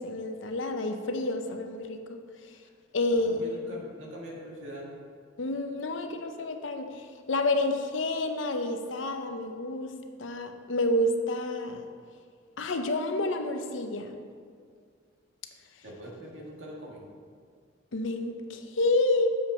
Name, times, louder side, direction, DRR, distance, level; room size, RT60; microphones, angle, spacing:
voice 1, 0.0-2.2 2.9-3.5 5.4-9.9 10.2-11.9 12.6-14.2 17.9-19.4, left 2 dB, 85° left, 6 dB, 0.7 m, -29 dB
voice 2, 3.1-5.0 15.8-17.0, equal, 75° right, -3 dB, 1.7 m, -43 dB
7.3 x 5.2 x 5.3 m, 2.1 s
head